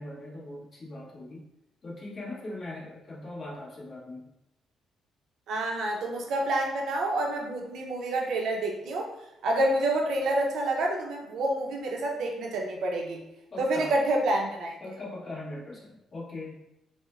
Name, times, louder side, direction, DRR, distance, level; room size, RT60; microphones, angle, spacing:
voice 1, 0.0-1.5 1.8-4.3 13.5-13.9 14.8-16.6, left 2 dB, 45° left, -6 dB, 1.3 m, -40 dB
voice 2, 5.5-9.1 9.4-13.2 13.6-14.7, right 1 dB, 75° right, 1 dB, 0.7 m, -28 dB
6.1 x 2.1 x 2.4 m, 0.88 s
cardioid pair, 90°, 0 cm